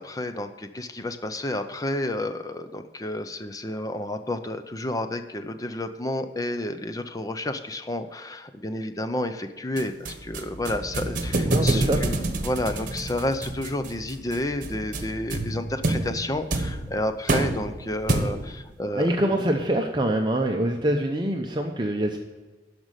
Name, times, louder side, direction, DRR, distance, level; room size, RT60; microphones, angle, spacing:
voice 1, 0.0-12.2 12.4-19.4, left 1 dB, 20° left, 8 dB, 0.6 m, -30 dB
sound 1, 9.8-18.6, right 2 dB, 50° right, 1.2 m, -28 dB
voice 2, 11.5-12.0 18.9-22.2, right 1 dB, 25° right, 3 dB, 0.7 m, -24 dB
12.5 x 5.2 x 9.0 m, 1.3 s
head